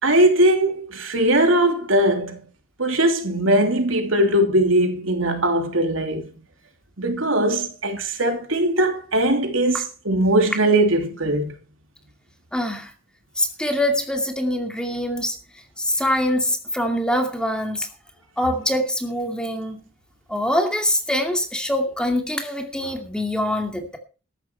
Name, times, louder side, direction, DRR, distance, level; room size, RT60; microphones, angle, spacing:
voice 1, 0.0-2.4 2.8-6.3 7.0-11.5, right 1 dB, 90° right, 3.0 m, -20 dB
voice 2, 12.5-12.9 13.4-15.4 15.8-17.9 18.4-19.8 20.3-24.0, left 1 dB, 5° left, 2.4 m, -24 dB
13.5 x 11.5 x 4.6 m
head